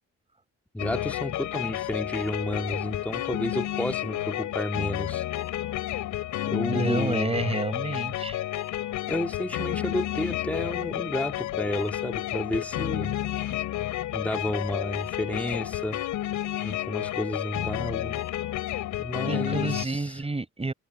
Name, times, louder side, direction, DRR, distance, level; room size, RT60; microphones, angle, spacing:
voice 1, 0.7-5.2 6.5-7.3 9.1-13.2 14.1-16.0 16.6-18.2 19.0-20.1, left 1 dB, 5° left, 2.5 m, -31 dB
sound 1, 0.8-19.9, left 13 dB, 85° left, 5.2 m, -31 dB
voice 2, 6.7-8.4 19.3-20.7, right 3 dB, 20° right, 5.3 m, -30 dB
cardioid pair, 90°, 30 cm